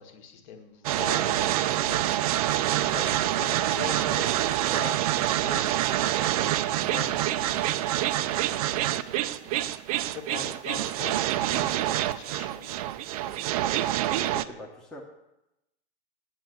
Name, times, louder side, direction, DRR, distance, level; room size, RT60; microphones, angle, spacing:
voice 1, 0.0-2.1 2.9-5.8 6.2-7.8 8.1-9.8 10.1-13.6, left 5 dB, 45° left, 6 dB, 1.7 m, -42 dB
sound 1, 0.8-14.4, right 13 dB, 35° right, 0.4 m, -26 dB
voice 2, 14.2-15.0, left 1 dB, ahead, -2 dB, 0.9 m, -43 dB
8.6 x 8.4 x 7.7 m, 0.91 s
supercardioid pair, 160°, 32 cm